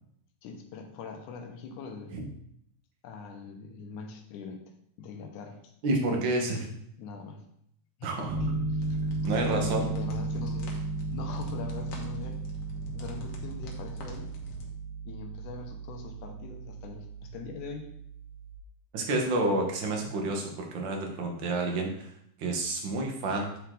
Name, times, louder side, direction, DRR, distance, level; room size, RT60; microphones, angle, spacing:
voice 1, 0.4-2.3 3.0-4.6 5.0-5.7 7.0-7.5 8.0-8.1 8.4-8.8 9.2-10.8 11.1-12.4 12.9-14.4 15.1-17.9, left 5 dB, 80° left, 3 dB, 2.4 m, -42 dB
voice 2, 5.8-6.7 8.0-8.4 9.2-9.9 18.9-22.1 22.4-23.5, right 2 dB, 55° right, 1 dB, 1.5 m, -29 dB
Piano, 8.3-18.5, right 3 dB, 85° right, 0.9 m, -35 dB
sound 1, 8.8-14.7, left 2 dB, 65° left, 2.2 m, -47 dB
9.6 x 4.5 x 3.8 m, 0.73 s
omnidirectional pair, 3.6 m